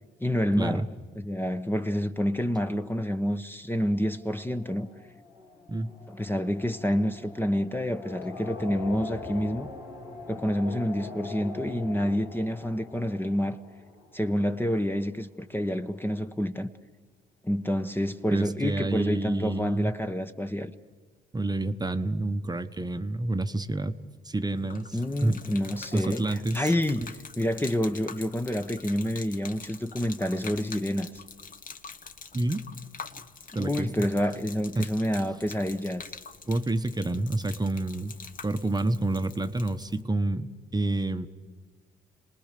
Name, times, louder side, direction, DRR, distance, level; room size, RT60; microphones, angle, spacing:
voice 1, 0.2-0.9 1.2-4.9 6.1-9.7 10.3-13.6 14.1-16.7 17.4-20.7 24.9-31.2 33.6-36.0, equal, 10° left, 1.1 m, -28 dB
sound 1, 3.8-14.7, left 3 dB, 70° left, 3.3 m, -43 dB
voice 2, 18.3-19.9 21.3-23.9 24.2-25.4 25.9-26.7 32.3-32.7 33.5-33.9 34.8-34.9 36.5-38.1 38.4-41.3, right 2 dB, 20° right, 1.1 m, -28 dB
Gurgling / Liquid, 24.6-40.0, left 5 dB, 45° left, 1.2 m, -45 dB
27.5 x 19.5 x 6.8 m
hypercardioid pair, 55°, 20 cm